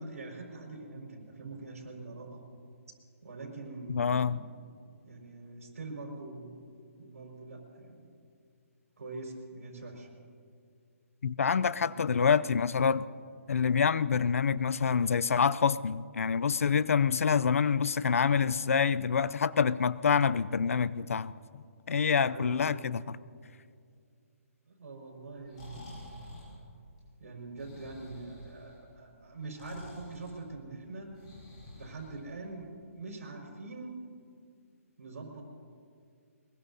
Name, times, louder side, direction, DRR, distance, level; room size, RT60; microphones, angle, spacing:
voice 1, 0.0-2.4 3.2-4.5 5.0-6.6 7.0-8.1 9.0-10.1 11.7-12.0 16.8-17.0 22.3-22.8 24.7-26.2 27.2-31.1 31.7-34.0 35.0-35.4, right 3 dB, 75° right, 0 dB, 5.4 m, -44 dB
voice 2, 3.9-4.4 11.2-13.1 13.5-23.2, left 6 dB, 65° left, 18 dB, 0.5 m, -27 dB
Breathing, 25.3-32.7, left 1 dB, 25° left, 5.5 m, -50 dB
23.5 x 21.5 x 2.8 m, 2.3 s
hypercardioid pair, 175°, 8 cm